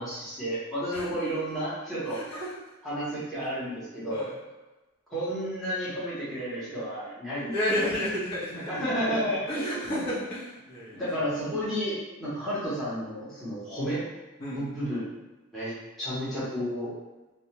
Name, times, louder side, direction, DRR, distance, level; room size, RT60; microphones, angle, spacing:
voice 1, 0.0-2.2 2.8-4.3 5.1-7.5 8.5-10.0 10.9-14.1 14.5-15.1 15.5-16.9, equal, ahead, -12 dB, 0.8 m, -31 dB
voice 2, 2.1-2.5 3.4-3.5 4.1-4.3 7.5-8.9 9.5-11.0 14.4-14.6, left 1 dB, 50° left, -10 dB, 0.9 m, -31 dB
2.3 x 2.2 x 2.8 m, 1.1 s
head